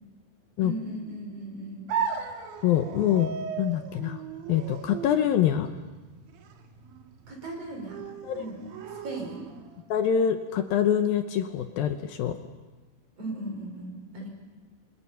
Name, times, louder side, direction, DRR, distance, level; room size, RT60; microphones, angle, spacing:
voice 1, 0.6-1.9 7.3-8.0 8.3-8.6 9.0-9.5 13.2-14.3, right 2 dB, 40° right, 1 dB, 6.0 m, -37 dB
sound 1, 1.9-9.8, right 6 dB, 70° right, 3.2 m, -37 dB
voice 2, 2.6-3.3 3.6-4.2 4.5-5.7 8.3-8.4 9.9-12.4, left 9 dB, 75° left, 8 dB, 2.6 m, -25 dB
28.5 x 25.0 x 5.7 m, 1.2 s
omnidirectional pair, 4.5 m